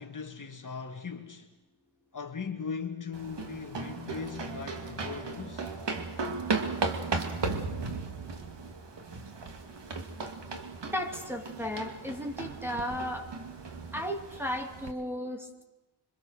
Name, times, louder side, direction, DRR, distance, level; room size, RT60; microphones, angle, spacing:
voice 1, 0.0-1.5 2.1-5.7, left 5 dB, 40° left, 2.1 m, -39 dB
sound 1, 3.1-14.9, right 4 dB, 60° right, 2.4 m, -36 dB
voice 2, 10.9-13.3 13.9-15.6, equal, 5° right, 2.6 m, -34 dB
27.0 x 24.5 x 6.5 m
wide cardioid pair, 150°, 47 cm